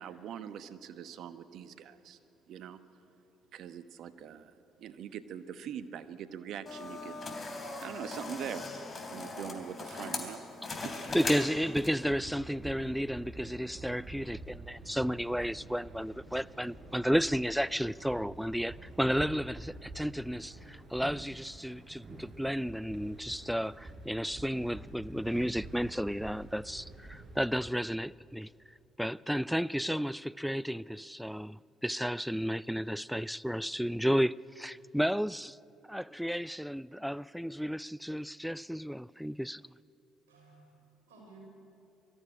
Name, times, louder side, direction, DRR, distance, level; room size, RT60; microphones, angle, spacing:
voice 1, 0.0-2.2 2.5-2.8 3.5-7.2 7.8-8.7 9.1-10.4 10.7-10.9, right 8 dB, 65° right, 1.1 m, -43 dB
sound 1, 6.7-12.1, left 3 dB, 35° left, 3.7 m, -39 dB
voice 2, 11.1-28.5 29.0-35.6 35.9-39.6, equal, ahead, 0.4 m, -32 dB
sound 2, 12.1-27.7, right 2 dB, 40° right, 4.8 m, -48 dB
voice 3, 40.3-41.4, right 3 dB, 85° right, 6.0 m, -57 dB
22.0 x 14.0 x 9.9 m
hypercardioid pair, 50°, 0 cm